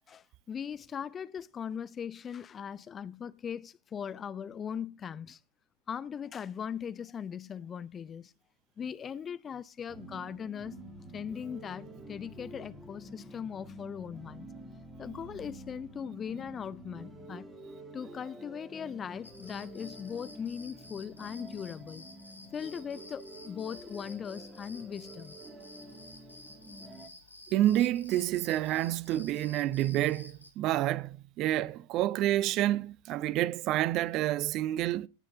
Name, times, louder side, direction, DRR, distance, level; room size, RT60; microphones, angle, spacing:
voice 1, 0.1-5.4 5.9-8.3 8.8-10.8 11.1-14.5 15.0-17.5 17.9-22.1 22.5-25.4, left 7 dB, 20° left, 0.5 m, -39 dB
sound 1, 9.9-27.1, right 1 dB, 10° right, 2.4 m, -48 dB
sound 2, 19.2-30.5, left 2 dB, 85° left, 2.8 m, -52 dB
voice 2, 27.5-35.1, right 14 dB, 35° right, 0.6 m, -28 dB
18.0 x 6.6 x 3.7 m
figure-of-eight pair, 90°, 0 cm